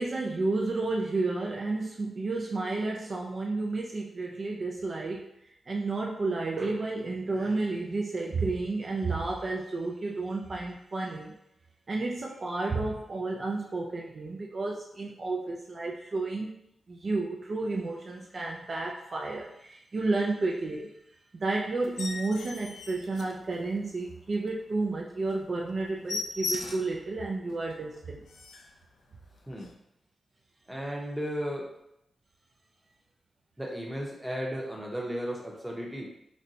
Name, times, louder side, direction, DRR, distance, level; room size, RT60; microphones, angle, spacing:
voice 1, 0.0-5.3 5.7-11.4 11.9-16.5 16.9-20.9 21.3-28.2, right 3 dB, 45° right, -1 dB, 0.4 m, -31 dB
sound 1, 21.8-24.0 24.4-24.5 24.9-25.0 25.3-25.4 25.7-27.0 27.5-27.6 28.0-28.1 28.3-28.8 29.5-29.7, left 3 dB, 75° left, 0.4 m, -38 dB
voice 2, 30.7-31.7 33.6-36.1, equal, 5° right, -2 dB, 0.8 m, -34 dB
4.1 x 2.2 x 2.6 m, 0.79 s
wide cardioid pair, 100°, 0 cm